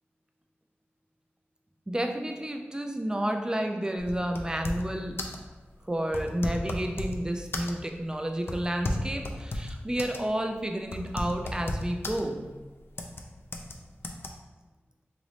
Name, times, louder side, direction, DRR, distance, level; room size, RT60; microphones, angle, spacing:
voice 1, 1.9-5.2 5.8-12.5, right 1 dB, 15° right, 4 dB, 0.4 m, -31 dB
sound 1, 4.0-4.9 5.2-5.5 6.1-7.2 7.5-8.0 8.5-10.2 10.5-10.6 10.9-12.2 13.0-13.2 13.5-13.7 14.0-14.3, left 2 dB, 60° left, 0.4 m, -33 dB
2.9 x 2.5 x 3.2 m, 1.2 s
cardioid pair, 50°, 4 cm